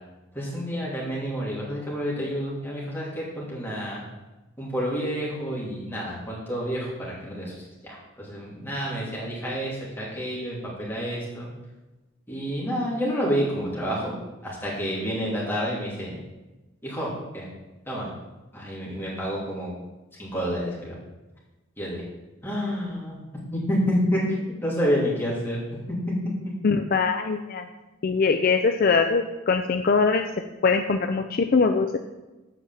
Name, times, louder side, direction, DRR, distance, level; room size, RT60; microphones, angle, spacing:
voice 1, 0.3-4.0 4.6-11.5 12.3-14.1 14.4-16.2 16.8-17.5 17.9-18.1 18.5-19.7 20.2-21.0 21.8-22.0 22.4-23.2 23.5-24.2 24.6-25.6 25.9-26.1, equal, 10° left, -6 dB, 2.7 m, -29 dB
voice 2, 26.6-27.7 28.0-30.3 30.6-31.9, left 4 dB, 45° left, 6 dB, 0.4 m, -22 dB
7.9 x 4.8 x 7.2 m, 1.1 s
head